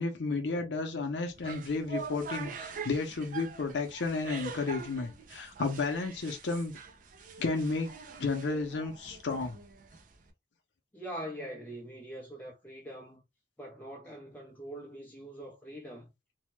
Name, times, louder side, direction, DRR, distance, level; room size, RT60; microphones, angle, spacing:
voice 1, 0.0-6.7 7.4-7.9 8.2-9.6, left 3 dB, 85° left, 0.6 m, -32 dB
sound 1, 1.3-10.3, right 5 dB, 50° right, 0.5 m, -44 dB
voice 2, 10.9-13.2 13.6-16.1, right 1 dB, 10° left, 0.5 m, -43 dB
2.7 x 2.1 x 3.0 m
head